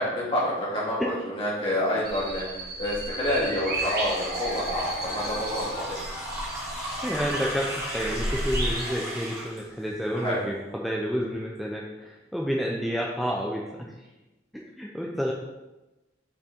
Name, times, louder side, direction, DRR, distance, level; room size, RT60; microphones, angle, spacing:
voice 1, 0.0-6.0 10.1-10.4, left 1 dB, 30° left, -6 dB, 2.1 m, -28 dB
sound 1, 2.0-8.9, right 1 dB, 55° right, 1.8 m, -34 dB
sound 2, 3.7-9.6, equal, 15° right, 2.2 m, -35 dB
voice 2, 7.0-14.1 14.5-15.3, equal, ahead, -2 dB, 0.5 m, -30 dB
5.8 x 4.3 x 4.4 m, 1.1 s
head